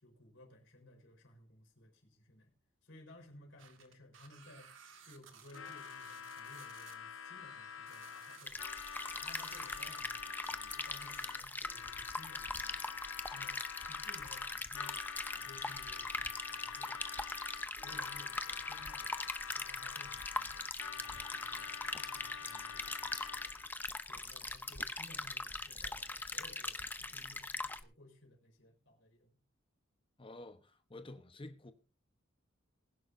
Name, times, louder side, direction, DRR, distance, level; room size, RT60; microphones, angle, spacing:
voice 1, 0.0-2.5 2.8-4.8 5.0-8.6 9.1-13.0 13.3-15.0 15.3-17.3 17.8-19.2 19.5-23.6 24.0-29.4, left 1 dB, 65° left, 4.6 m, -58 dB
sound 1, 3.6-7.0 7.3-12.0 12.3-12.9 13.2-13.3 13.8-13.9 14.3-14.4 14.6-14.7 15.0-15.1 15.6-15.8 16.2-16.3 16.9-17.4 17.8-18.6 19.1-19.5, right 7 dB, 70° right, 1.9 m, -59 dB
Harmonica, 5.5-23.8, left 7 dB, 90° left, 0.9 m, -47 dB
sound 2, 8.5-27.8, left 2 dB, 10° left, 0.6 m, -41 dB
voice 2, 30.2-31.7, left 2 dB, 25° left, 1.1 m, -50 dB
20.5 x 11.0 x 2.7 m
head